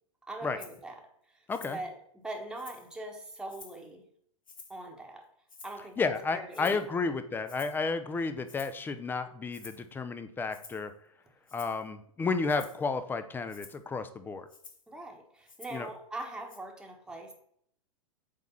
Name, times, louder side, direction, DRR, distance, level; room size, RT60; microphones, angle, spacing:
voice 1, 0.2-2.0 2.2-4.0 4.7-5.3 5.6-6.1 6.3-7.1 14.9-17.3, right 2 dB, 5° right, 1 dB, 1.2 m, -42 dB
Rattle (instrument), 0.6-0.8 1.5-1.9 2.3-2.9 3.5-3.9 4.5-4.9 5.5-5.9 6.5-6.9 7.5-7.8 8.5-8.8 9.5-9.9 10.5-10.9 11.5-11.8 12.5-12.8 13.5-13.8 14.5-14.9 15.5-15.9 16.5-16.6, left 4 dB, 75° left, 1.2 m, -51 dB
voice 2, 6.0-10.9 11.5-14.5 15.7-15.9, left 4 dB, 10° left, 10 dB, 0.6 m, -32 dB
8.4 x 3.5 x 5.7 m, 0.67 s
figure-of-eight pair, 95°, 17 cm